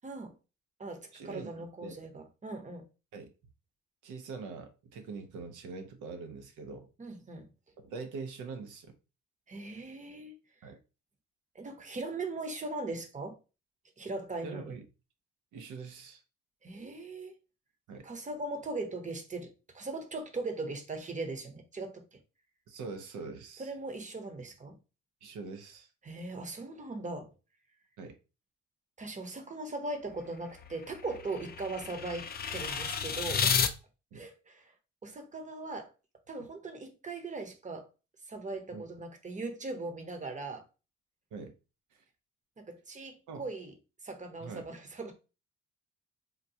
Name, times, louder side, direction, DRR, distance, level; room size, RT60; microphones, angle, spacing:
voice 1, 0.0-0.3 0.8-2.9 7.0-7.5 9.5-10.3 10.6-10.7 11.5-13.4 14.0-14.7 16.6-17.3 18.0-22.2 23.6-24.8 26.0-27.3 29.0-33.6 34.1-34.7 35.0-35.9 36.3-37.9 38.3-40.6 42.6-43.7 44.0-45.1, right 3 dB, 25° right, 0.8 m, -39 dB
voice 2, 1.1-2.0 3.1-3.3 4.0-6.9 7.8-8.9 10.6-10.8 14.4-14.8 15.5-16.2 17.9-18.1 22.7-23.7 25.2-25.9 28.0-28.2 34.1-34.3 38.7-38.8 41.3-41.5 41.9-42.0 43.3-43.5 44.4-44.6, right 4 dB, 80° right, 0.8 m, -43 dB
sound 1, 30.1-33.7, left 6 dB, 30° left, 0.4 m, -32 dB
3.8 x 2.2 x 2.8 m
cardioid pair, 90°, 30 cm